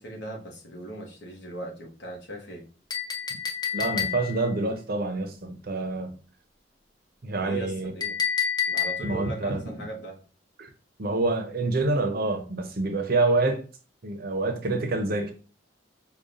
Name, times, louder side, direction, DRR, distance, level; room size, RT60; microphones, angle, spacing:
voice 1, 0.0-2.6 7.4-8.2 8.7-10.2, right 1 dB, 65° left, 1.1 m, -39 dB
Chink clink, 2.9-4.5 8.0-9.3, left 7 dB, 20° left, 0.5 m, -29 dB
voice 2, 3.7-6.2 7.2-7.9 9.0-9.6 10.6-10.7 11.0-13.6 14.0-15.3, right 2 dB, 55° right, 0.7 m, -27 dB
4.9 x 2.3 x 2.6 m
head